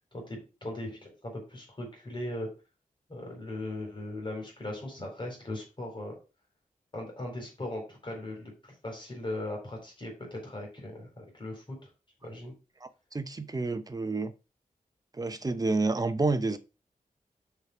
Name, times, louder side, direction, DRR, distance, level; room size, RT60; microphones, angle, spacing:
voice 1, 0.1-2.5 3.1-6.1 6.9-11.9 12.2-12.5, left 1 dB, 35° left, 4.1 m, -39 dB
voice 2, 12.8-14.3 15.1-16.6, right 3 dB, 25° right, 0.8 m, -29 dB
6.5 x 6.0 x 5.0 m
wide cardioid pair, 120°, 14 cm